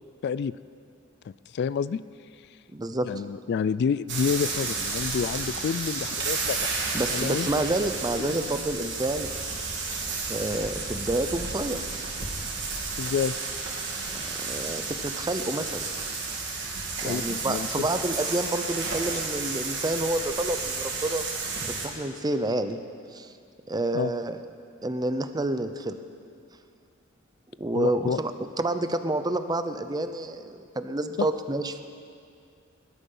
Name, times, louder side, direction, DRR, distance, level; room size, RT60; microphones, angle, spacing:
voice 1, 0.2-0.6 1.3-2.0 3.0-6.7 7.1-7.5 8.2-8.3 9.9-10.0 13.0-13.3 17.0-17.9 23.9-24.1 27.7-28.2 31.2-31.3, left 6 dB, 55° left, 16 dB, 0.3 m, -29 dB
voice 2, 2.7-3.1 6.9-9.3 10.3-11.8 14.1-15.9 17.0-21.2 21.7-22.8 23.1-23.3 23.7-24.4 24.8-26.0 27.6-28.3 28.6-31.8, right 2 dB, 20° right, 10 dB, 0.7 m, -29 dB
sound 1, 4.1-21.9, right 4 dB, 60° right, 3.0 m, -32 dB
20.0 x 12.0 x 5.5 m, 2.3 s
head